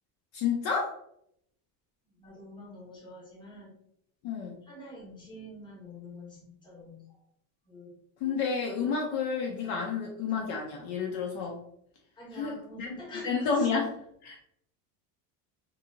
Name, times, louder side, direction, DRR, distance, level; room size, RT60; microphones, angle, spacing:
voice 1, 0.3-1.0 4.2-4.6 8.2-11.6 12.3-12.9 13.2-14.4, left 5 dB, 55° left, 0 dB, 0.5 m, -30 dB
voice 2, 2.2-3.8 4.6-7.0 7.6-7.9 12.2-13.7, left 1 dB, 10° left, -4 dB, 0.8 m, -46 dB
2.7 x 2.6 x 2.5 m, 0.74 s
cardioid pair, 160°, 49 cm